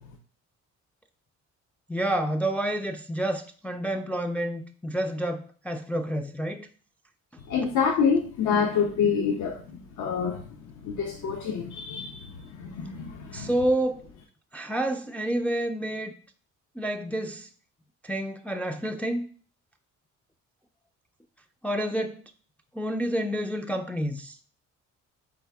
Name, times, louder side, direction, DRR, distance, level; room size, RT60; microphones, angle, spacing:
voice 1, 1.9-6.7 13.3-14.1 14.5-16.1 16.8-17.5 18.0-19.3 21.6-22.2 22.7-24.4, right 1 dB, 5° left, 0.3 m, -29 dB
voice 2, 7.5-10.4 10.8-13.5, left 6 dB, 75° left, 0.6 m, -27 dB
4.1 x 3.6 x 3.4 m
cardioid pair, 90°, 30 cm